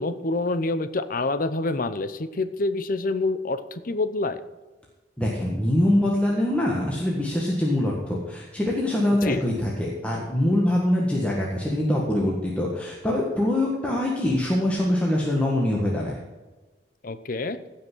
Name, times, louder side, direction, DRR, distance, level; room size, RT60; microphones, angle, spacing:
voice 1, 0.0-4.4 9.2-9.4 17.0-17.6, left 2 dB, 50° left, 11 dB, 0.8 m, -27 dB
voice 2, 5.2-16.2, left 1 dB, 5° left, -3 dB, 1.7 m, -24 dB
16.0 x 5.8 x 6.2 m, 1.2 s
head